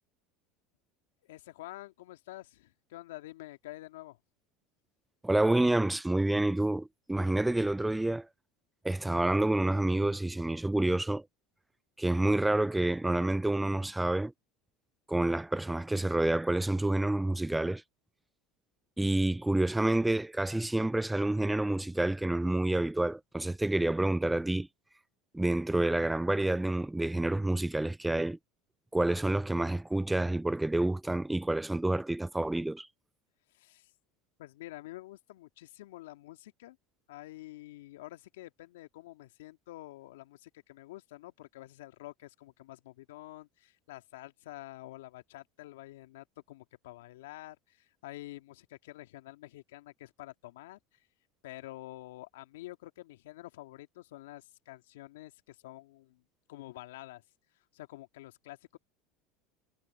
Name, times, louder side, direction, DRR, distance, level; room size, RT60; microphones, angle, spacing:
voice 1, 1.2-4.2 33.5-33.9 34.4-36.8 37.1-50.8 51.4-56.2 56.5-57.2 57.7-58.8, left 17 dB, 80° left, 2.3 m, -48 dB
voice 2, 5.2-8.3 8.8-11.2 12.0-14.3 15.1-17.8 19.0-24.7 25.3-28.4 28.9-32.9, right 1 dB, 10° right, 0.4 m, -28 dB
hypercardioid pair, 85°, 0 cm